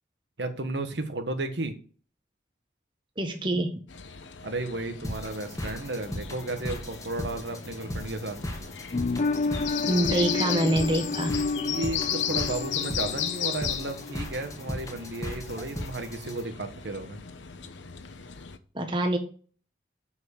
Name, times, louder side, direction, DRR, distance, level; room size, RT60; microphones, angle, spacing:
voice 1, 0.4-1.7 4.4-8.4 10.1-10.6 11.5-17.2, right 2 dB, 75° right, 7 dB, 1.3 m, -33 dB
voice 2, 3.2-3.8 9.9-11.4 18.7-19.2, right 1 dB, 25° right, 4 dB, 1.5 m, -26 dB
Wren joined by pigeon and magpies, 3.9-18.6, left 9 dB, 90° left, 0.9 m, -36 dB
sound 1, 5.0-16.4, equal, 15° left, 1.4 m, -38 dB
sound 2, 8.9-14.4 14.7-14.8, left 3 dB, 40° left, 0.4 m, -31 dB
7.4 x 5.6 x 6.5 m, 0.40 s
head